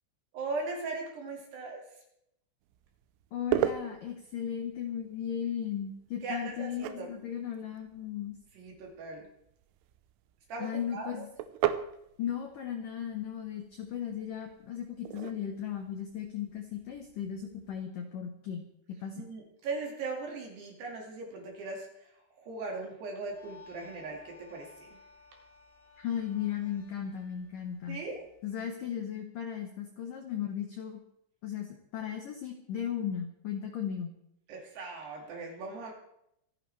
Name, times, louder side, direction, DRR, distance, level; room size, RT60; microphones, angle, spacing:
voice 1, 0.3-1.8 6.2-7.1 8.6-9.3 10.5-11.2 19.2-21.9 22.4-24.7 27.9-28.2 34.5-35.9, right 3 dB, 60° right, 0 dB, 4.1 m, -39 dB
sound 1, 2.6-17.8, right 12 dB, 90° right, 3.4 m, -39 dB
voice 2, 3.3-8.4 10.6-11.3 12.2-19.3 26.0-28.0 28.4-31.0 31.4-34.1, left 9 dB, 75° left, 4 dB, 2.0 m, -36 dB
sound 2, 23.3-28.5, left 4 dB, 20° left, 4.1 m, -56 dB
26.5 x 10.5 x 3.4 m, 0.76 s
omnidirectional pair, 5.5 m